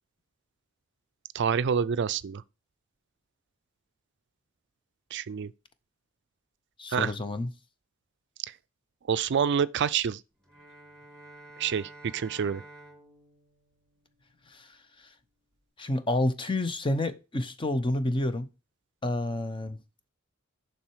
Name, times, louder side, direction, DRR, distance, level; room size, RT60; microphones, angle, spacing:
voice 1, 1.3-2.4 5.1-5.5 6.9-7.1 9.1-10.2 11.6-12.6, right 7 dB, 55° right, 0.4 m, -27 dB
voice 2, 6.8-7.5 14.5-14.7 15.8-18.5 19.0-19.8, left 1 dB, 25° left, 0.7 m, -29 dB
Bowed string instrument, 10.4-14.8, right 2 dB, 5° left, 3.0 m, -51 dB
7.2 x 5.7 x 4.6 m
head